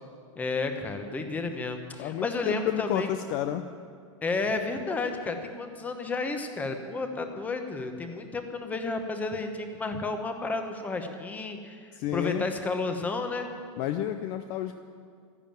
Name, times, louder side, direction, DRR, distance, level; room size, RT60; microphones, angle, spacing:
voice 1, 0.4-3.1 4.2-11.8 12.1-13.5, left 3 dB, 10° left, 6 dB, 1.0 m, -32 dB
voice 2, 2.0-3.6 11.9-12.5 13.8-14.8, left 11 dB, 35° left, 9 dB, 0.5 m, -31 dB
13.0 x 11.0 x 9.0 m, 2.1 s
supercardioid pair, 165°, 16 cm